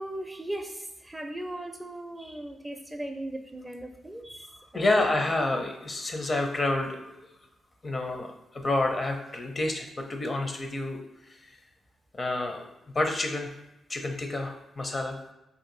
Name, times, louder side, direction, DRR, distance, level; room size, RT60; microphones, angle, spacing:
voice 1, 0.0-5.1 5.5-5.6 15.0-15.1, right 1 dB, 15° right, 4 dB, 0.5 m, -38 dB
voice 2, 4.7-7.3 7.8-11.0 11.3-11.5 12.1-12.7 12.9-13.5 13.9-15.2, left 2 dB, 40° left, 4 dB, 0.6 m, -29 dB
2.7 x 2.6 x 3.9 m, 0.92 s
supercardioid pair, 50°, 0 cm